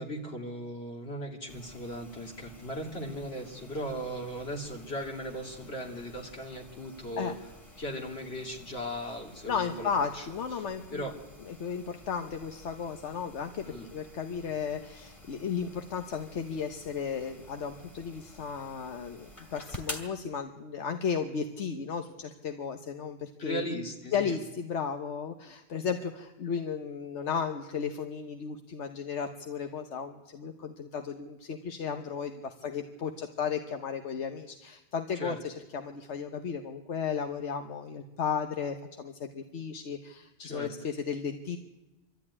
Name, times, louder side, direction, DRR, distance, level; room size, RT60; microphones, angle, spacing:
voice 1, 0.0-7.4 7.8-10.3 10.5-10.6 10.9-11.1 13.7-13.9 23.4-24.4 35.2-35.4 40.4-40.7, equal, 65° left, 1 dB, 3.1 m, -37 dB
sound 1, 1.5-20.1, left 1 dB, 30° left, 2.9 m, -50 dB
voice 2, 9.5-11.0 11.4-23.6 24.1-41.6, left 6 dB, 85° left, 6 dB, 1.3 m, -34 dB
24.5 x 13.0 x 9.8 m, 1.1 s
omnidirectional pair, 1.2 m